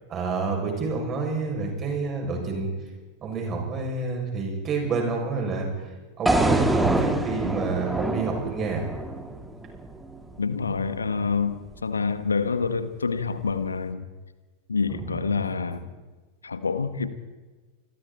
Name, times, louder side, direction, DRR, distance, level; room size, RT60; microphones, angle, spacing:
voice 1, 0.1-2.7 3.2-5.7 6.2-8.9 14.9-15.1, right 4 dB, 25° right, 1 dB, 7.2 m, -28 dB
sound 1, 6.3-10.4, right 2 dB, 5° right, 2.2 m, -25 dB
voice 2, 10.4-14.0 14.7-15.9 16.4-17.1, left 5 dB, 75° left, 12 dB, 1.6 m, -27 dB
29.0 x 21.5 x 4.4 m, 1.3 s
figure-of-eight pair, 90°, 0 cm